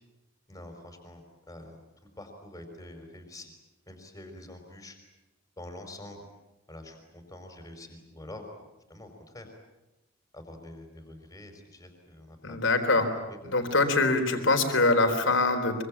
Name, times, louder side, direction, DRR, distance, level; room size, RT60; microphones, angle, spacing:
voice 1, 0.5-1.8 2.2-3.5 3.9-4.9 5.6-6.2 6.7-8.4 8.9-9.5 10.3-12.6 13.3-13.4, left 1 dB, 15° left, 5 dB, 5.0 m, -46 dB
voice 2, 12.4-13.1 13.4-15.8, left 3 dB, 60° left, 6 dB, 4.0 m, -24 dB
25.0 x 24.5 x 8.8 m, 1.0 s
head